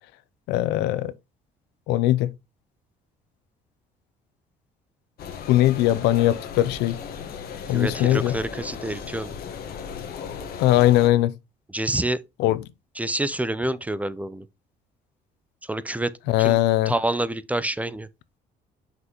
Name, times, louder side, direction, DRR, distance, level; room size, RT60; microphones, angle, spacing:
voice 1, 0.5-1.1 1.9-2.3 5.5-7.0 7.7-8.4 10.6-11.3 12.4-12.6 16.3-16.9, left 14 dB, 90° left, 0.6 m, -20 dB
sound 1, 5.2-11.1, left 7 dB, 65° left, 1.4 m, -36 dB
voice 2, 7.7-9.3 11.7-12.2 13.0-14.5 15.6-16.6 16.9-18.1, right 1 dB, 10° right, 0.4 m, -27 dB
5.9 x 5.5 x 2.9 m
cardioid pair, 110°, 17 cm